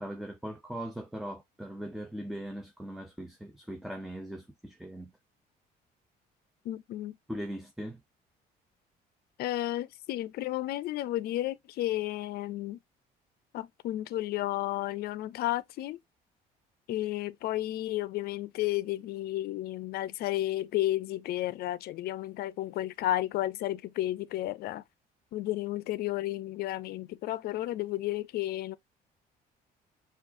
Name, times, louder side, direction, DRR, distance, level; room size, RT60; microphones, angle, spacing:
voice 1, 0.0-5.1 7.3-8.0, equal, ahead, 0.4 m, -40 dB
voice 2, 6.6-7.2 9.4-12.8 13.5-16.0 16.9-24.8 25.3-28.8, left 15 dB, 70° left, 0.4 m, -32 dB
5.9 x 2.4 x 2.5 m
cardioid pair, 110°, 17 cm